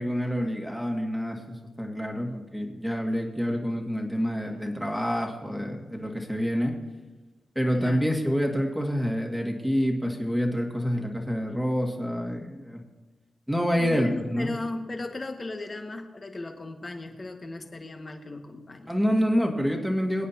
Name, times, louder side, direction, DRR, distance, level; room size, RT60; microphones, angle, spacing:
voice 1, 0.0-6.7 7.6-12.8 13.5-14.5 18.9-20.3, equal, ahead, 2 dB, 2.1 m, -27 dB
voice 2, 7.7-8.1 13.8-18.9, left 2 dB, 30° left, 4 dB, 1.7 m, -36 dB
24.0 x 9.1 x 2.9 m, 1.2 s
cardioid pair, 90°, 0 cm